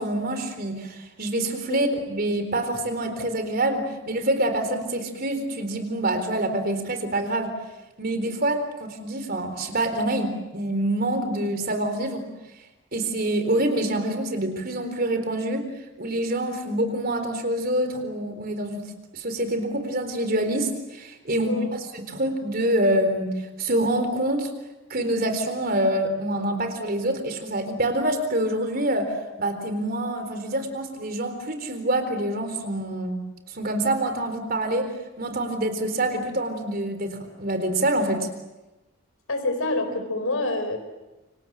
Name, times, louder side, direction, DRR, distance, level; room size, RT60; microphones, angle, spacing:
voice 1, 0.0-7.6 8.0-12.2 12.9-15.7 16.0-18.9 19.1-24.5 24.9-33.2 33.5-38.3, right 1 dB, 45° right, 8 dB, 4.0 m, -26 dB
voice 2, 39.3-40.8, left 2 dB, 90° left, 8 dB, 4.7 m, -27 dB
29.0 x 26.0 x 7.5 m, 1.1 s
head